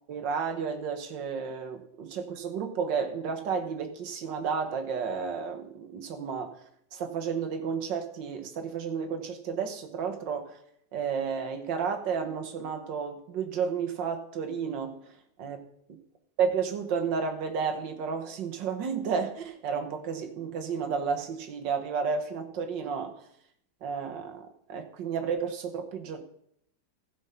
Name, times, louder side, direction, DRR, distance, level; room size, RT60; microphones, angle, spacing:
voice 1, 0.1-6.5 6.9-10.6 10.9-14.9 15.4-15.6 16.4-23.2 23.8-26.2, right 6 dB, 85° right, 5 dB, 1.9 m, -32 dB
15.5 x 5.3 x 5.6 m, 0.71 s
omnidirectional pair, 1.9 m